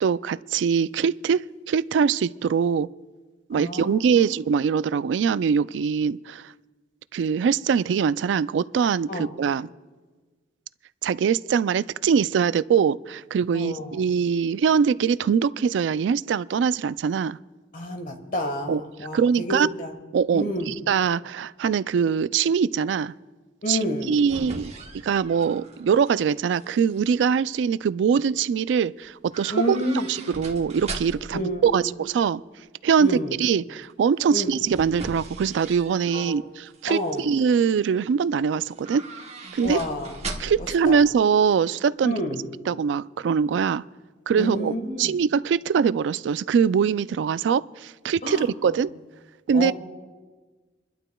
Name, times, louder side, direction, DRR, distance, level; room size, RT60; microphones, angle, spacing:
voice 1, 0.0-2.9 3.5-6.5 7.1-9.7 11.0-17.4 18.7-18.8 19.1-19.7 20.1-23.1 23.7-23.8 24.1-24.7 25.0-29.8 30.1-32.4 32.8-39.0 39.5-39.8 40.4-42.2 42.7-43.8 44.3-44.7 45.0-48.9 49.5-49.7, right 6 dB, 75° right, 17 dB, 0.3 m, -23 dB
voice 2, 3.5-4.3 9.1-9.3 13.5-14.0 17.7-19.9 20.3-20.8 23.6-24.1 29.5-30.1 31.3-31.9 33.0-33.3 34.3-34.5 36.1-36.5 36.9-37.3 39.6-40.1 40.6-41.0 42.0-42.4 44.4-45.2 48.2-48.8 49.5-49.7, left 1 dB, 50° left, 5 dB, 1.5 m, -30 dB
sound 1, 23.8-26.2 26.5-27.1 29.3-31.4 34.2-36.3 36.7-37.2 38.7-40.8 41.0-41.1, right 3 dB, 35° right, 1.2 m, -39 dB
28.0 x 12.0 x 2.3 m, 1.4 s
head